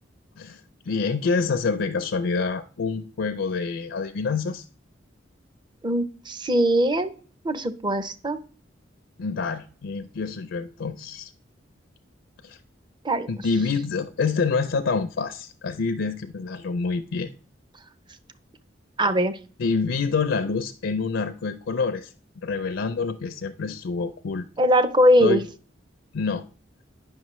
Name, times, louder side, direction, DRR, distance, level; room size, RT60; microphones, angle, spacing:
voice 1, 0.9-4.6 9.2-11.3 12.4-12.6 13.3-17.3 19.6-22.1 22.4-24.5 25.2-25.4 26.1-26.4, left 4 dB, 70° left, 0.5 m, -27 dB
voice 2, 5.8-7.1 7.4-8.4 13.0-13.3 19.0-19.4 24.6-25.4, equal, 25° right, 0.5 m, -21 dB
9.6 x 5.9 x 3.0 m
head